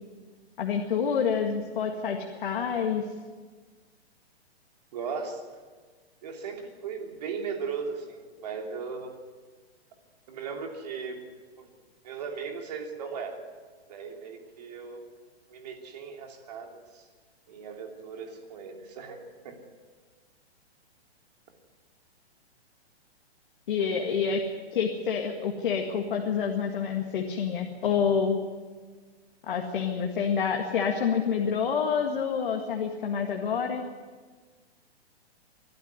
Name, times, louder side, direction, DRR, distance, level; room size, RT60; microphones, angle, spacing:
voice 1, 0.6-3.0 23.7-24.4 24.7-28.4 29.5-33.9, left 6 dB, 50° left, 2 dB, 2.0 m, -27 dB
voice 2, 4.9-5.4 6.2-9.1 10.3-11.2 11.6-11.7 12.0-13.4 13.9-15.0 15.5-16.8 17.5-19.6, right 5 dB, 40° right, 2 dB, 3.1 m, -37 dB
23.0 x 12.0 x 9.7 m, 1.5 s
hypercardioid pair, 175°, 32 cm